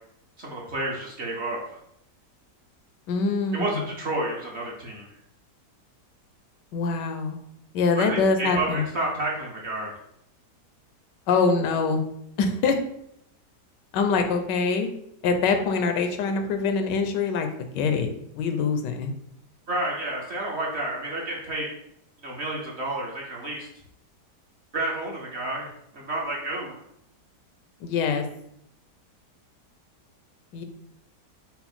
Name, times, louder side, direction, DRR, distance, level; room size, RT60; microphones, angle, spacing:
voice 1, 0.4-1.8 3.5-5.1 8.0-9.9 19.7-21.7 22.2-23.7 24.7-25.7 25.9-26.7, right 2 dB, 50° right, -2 dB, 0.9 m, -30 dB
voice 2, 3.1-3.8 6.7-7.4 7.7-8.8 11.3-12.0 12.4-12.8 13.9-14.9 15.2-18.1 18.3-19.1 27.8-28.3 30.5-30.6, left 4 dB, 90° left, 6 dB, 1.3 m, -24 dB
5.8 x 2.1 x 4.2 m, 0.75 s
omnidirectional pair, 1.8 m